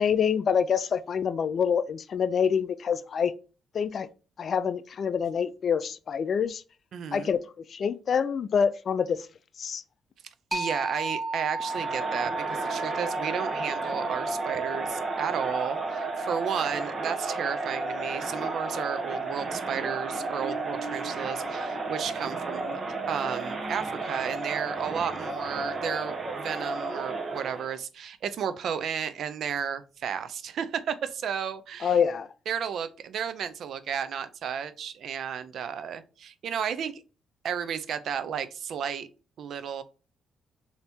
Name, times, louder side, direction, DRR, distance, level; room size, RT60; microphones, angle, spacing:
voice 1, 0.0-3.3 3.7-4.1 4.4-6.6 7.1-9.3 9.6-9.8 31.8-32.3, left 7 dB, 50° left, 0.4 m, -26 dB
voice 2, 6.9-7.3 10.5-32.0 32.5-37.0 37.4-39.1 39.4-39.8, right 7 dB, 65° right, 0.5 m, -33 dB
sound 1, 10.5-19.9, right 2 dB, 10° right, 0.7 m, -36 dB
Crowd, 11.6-27.8, right 3 dB, 40° right, 0.8 m, -33 dB
3.3 x 2.8 x 4.3 m
cardioid pair, 90°, 0 cm